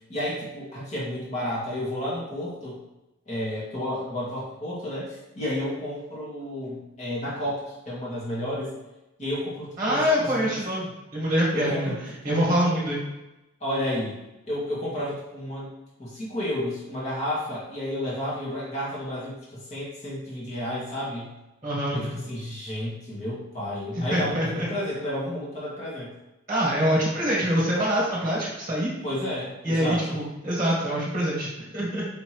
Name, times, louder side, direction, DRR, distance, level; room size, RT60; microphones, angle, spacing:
voice 1, 0.1-2.8 3.3-8.7 9.2-10.5 11.5-12.0 12.3-12.9 13.6-14.2 14.5-15.7 16.0-21.3 21.9-26.1 29.0-30.2, left 1 dB, 35° left, -7 dB, 2.2 m, -31 dB
voice 2, 9.8-11.9 12.2-13.0 21.6-22.0 24.0-24.7 26.5-28.9 29.6-32.1, equal, 15° right, -5 dB, 1.6 m, -25 dB
5.7 x 5.6 x 3.1 m, 0.97 s
head